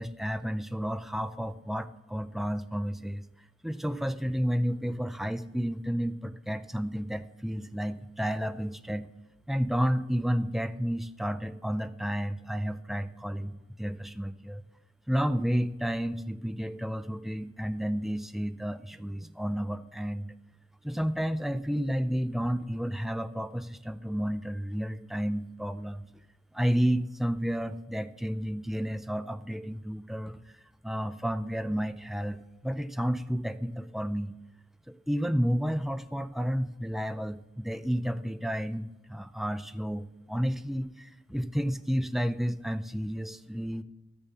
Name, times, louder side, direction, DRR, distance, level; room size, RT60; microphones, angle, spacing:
voice 1, 0.0-3.3 3.6-9.1 9.5-14.6 15.1-20.3 20.8-26.1 26.5-30.4 30.8-34.3 34.9-43.8, equal, ahead, 11 dB, 0.4 m, -31 dB
12.5 x 6.9 x 7.0 m, 1.0 s
head